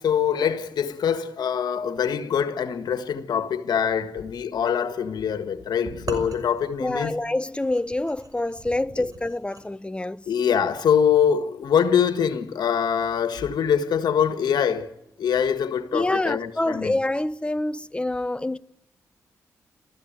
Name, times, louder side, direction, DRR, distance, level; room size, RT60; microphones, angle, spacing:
voice 1, 0.0-7.1 10.3-14.9 15.2-17.0, left 8 dB, 75° left, 1.7 m, -24 dB
sound 1, 5.8-9.7, right 3 dB, 55° right, 5.9 m, -39 dB
voice 2, 6.8-10.2 15.9-18.6, left 1 dB, 15° left, 1.0 m, -26 dB
28.5 x 14.5 x 9.1 m
supercardioid pair, 45°, 7 cm